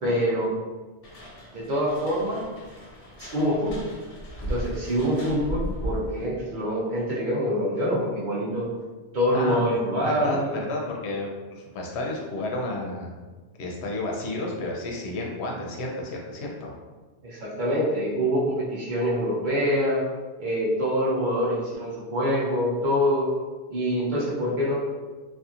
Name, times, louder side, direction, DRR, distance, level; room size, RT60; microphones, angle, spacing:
voice 1, 0.0-0.5 1.5-2.4 3.2-3.9 4.4-8.7 9.1-10.5 17.2-20.0 20.4-23.3 23.7-24.8, equal, 50° right, -6 dB, 0.7 m, -25 dB
sound 1, 1.0-6.2, equal, 45° left, 0.5 m, -36 dB
voice 2, 9.3-9.6 10.0-13.2 13.6-16.7, left 2 dB, 75° left, -1 dB, 0.8 m, -31 dB
2.7 x 2.5 x 2.4 m, 1.3 s
omnidirectional pair, 1.1 m